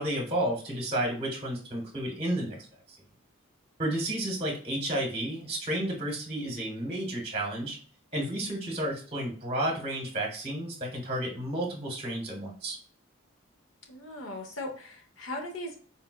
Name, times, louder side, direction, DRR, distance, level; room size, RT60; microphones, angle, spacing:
voice 1, 0.0-2.6 2.9-3.0 3.8-7.8 8.1-12.8, right 1 dB, 30° right, -1 dB, 1.0 m, -31 dB
voice 2, 13.9-15.8, left 1 dB, 80° left, 3 dB, 0.9 m, -38 dB
4.1 x 2.2 x 2.2 m, 0.43 s
head